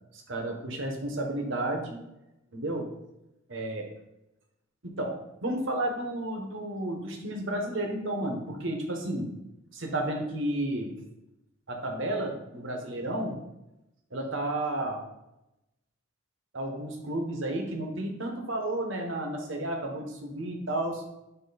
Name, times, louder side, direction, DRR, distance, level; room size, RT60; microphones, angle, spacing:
voice 1, 0.1-2.0 2.5-2.9 3.5-3.9 4.8-5.1 5.4-9.3 9.7-10.9 11.7-13.3 14.1-15.0 16.5-21.0, right 1 dB, 65° right, 2 dB, 1.3 m, -32 dB
9.0 x 3.0 x 4.2 m, 0.91 s
head